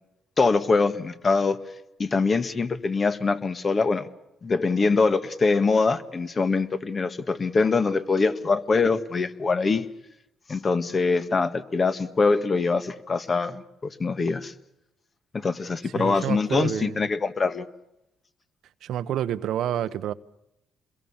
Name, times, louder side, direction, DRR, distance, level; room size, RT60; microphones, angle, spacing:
voice 1, 0.4-1.6 2.0-4.1 4.4-9.9 10.5-14.5 15.3-17.7, left 4 dB, 35° left, 1.8 m, -23 dB
voice 2, 15.9-17.1 18.8-20.1, right 11 dB, 80° right, 0.9 m, -28 dB
27.5 x 22.0 x 7.3 m
cardioid pair, 90°, 0 cm